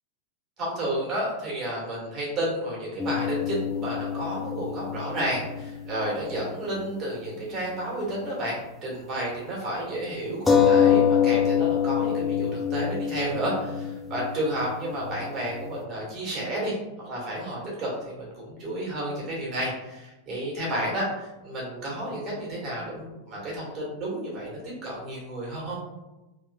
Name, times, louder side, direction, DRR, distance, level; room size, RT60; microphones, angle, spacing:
voice 1, 0.6-25.8, right 1 dB, 30° right, -4 dB, 1.5 m, -31 dB
sound 1, 3.0-6.9 7.1-7.2 10.5-15.7, left 8 dB, 10° left, 0.4 m, -26 dB
3.0 x 2.9 x 2.3 m, 1.0 s
figure-of-eight pair, 90°, 0 cm